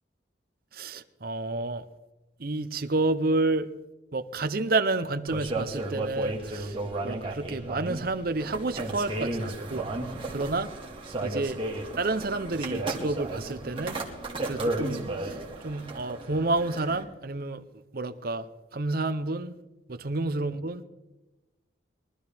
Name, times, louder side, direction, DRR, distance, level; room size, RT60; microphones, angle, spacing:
voice 1, 0.7-1.9 2.4-3.7 4.1-6.8 7.0-9.9 10.3-10.7 11.2-11.6 12.0-14.0 14.5-17.6 17.9-18.5 18.7-19.5 19.9-20.9, right 2 dB, 50° right, 0.7 m, -29 dB
sound 1, 5.3-17.0, right 2 dB, 25° right, 2.0 m, -34 dB
22.5 x 12.5 x 3.5 m
head